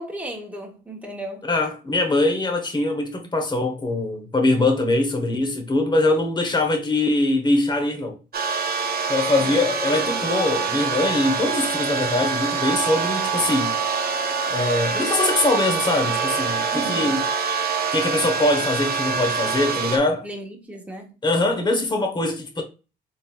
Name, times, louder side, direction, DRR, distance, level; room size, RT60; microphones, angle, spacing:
voice 1, 0.0-1.5 9.4-9.6 16.7-17.2 20.2-21.1, right 1 dB, 5° right, 1.4 m, -35 dB
voice 2, 1.5-8.2 9.1-13.7 14.5-17.2 17.9-20.3 21.2-22.6, left 2 dB, 20° left, 1.2 m, -22 dB
sound 1, 8.3-20.0, right 5 dB, 50° right, 0.8 m, -25 dB
4.0 x 3.8 x 2.5 m
cardioid pair, 90°, 20 cm